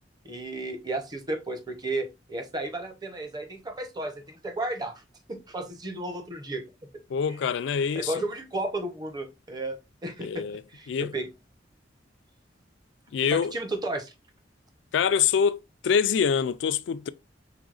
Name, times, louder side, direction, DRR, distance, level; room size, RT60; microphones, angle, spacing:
voice 1, 0.2-5.0 5.3-6.6 8.0-10.4 10.7-11.3 13.2-14.1, right 2 dB, 20° right, 0.7 m, -33 dB
voice 2, 7.1-8.1 10.2-10.6 10.9-11.1 13.1-13.6 14.9-17.1, left 7 dB, 80° left, 0.3 m, -25 dB
5.0 x 3.5 x 2.4 m
head